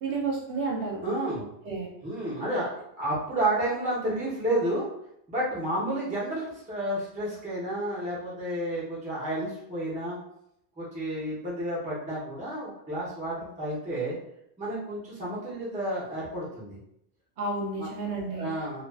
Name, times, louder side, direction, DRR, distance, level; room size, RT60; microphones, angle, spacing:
voice 1, 0.0-1.0 1.6-1.9 17.4-18.5, right 3 dB, 75° right, 0 dB, 0.9 m, -31 dB
voice 2, 1.0-1.5 2.0-4.9 5.3-10.2 10.8-14.2 14.6-16.8 17.8-18.8, right 1 dB, 10° right, -7 dB, 0.5 m, -31 dB
2.3 x 2.3 x 2.3 m, 0.76 s
omnidirectional pair, 1.2 m